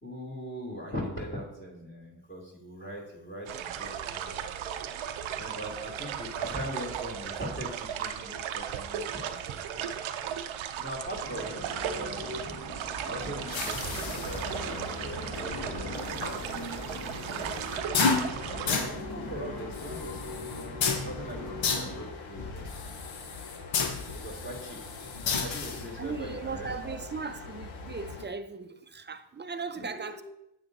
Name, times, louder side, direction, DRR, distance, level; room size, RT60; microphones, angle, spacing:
voice 1, 0.0-4.5 5.3-9.9 10.7-11.6 11.9-12.5 13.0-17.7 18.6-20.5 21.0-22.8 24.1-24.8 25.3-27.1 29.7-30.2, equal, 25° left, -2 dB, 2.8 m, -41 dB
sound 1, 3.5-18.9, right 9 dB, 85° right, 0.7 m, -36 dB
sound 2, 11.2-22.1, left 1 dB, 50° left, 2.2 m, -41 dB
sound 3, 13.4-28.2, left 5 dB, 75° left, 1.2 m, -34 dB
voice 2, 26.0-30.2, right 5 dB, 25° right, 10 dB, 0.6 m, -38 dB
9.1 x 8.2 x 2.7 m, 0.82 s
cardioid pair, 70°, 46 cm